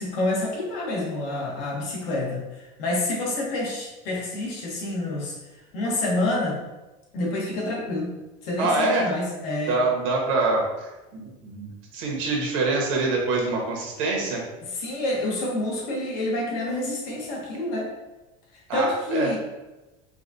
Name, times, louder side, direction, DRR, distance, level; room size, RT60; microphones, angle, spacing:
voice 1, 0.0-5.4 5.7-6.6 7.1-8.2 8.4-9.8 14.6-17.9 18.7-19.4, left 2 dB, 55° left, -2 dB, 1.1 m, -28 dB
voice 2, 8.6-9.1 9.7-14.4 18.7-19.4, right 3 dB, 85° right, -1 dB, 1.2 m, -25 dB
4.8 x 2.3 x 2.7 m, 1.1 s
cardioid pair, 170°, 16 cm